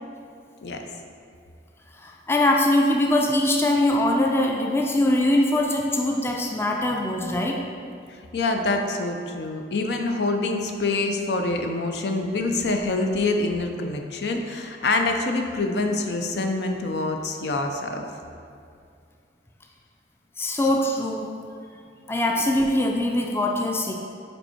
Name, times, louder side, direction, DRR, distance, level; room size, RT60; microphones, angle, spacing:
voice 1, 2.0-7.6 20.4-21.3 22.1-23.9, left 1 dB, 15° left, 0 dB, 0.4 m, -22 dB
voice 2, 8.3-18.1, left 2 dB, 70° left, 4 dB, 0.5 m, -26 dB
5.3 x 4.5 x 4.2 m, 2.4 s
head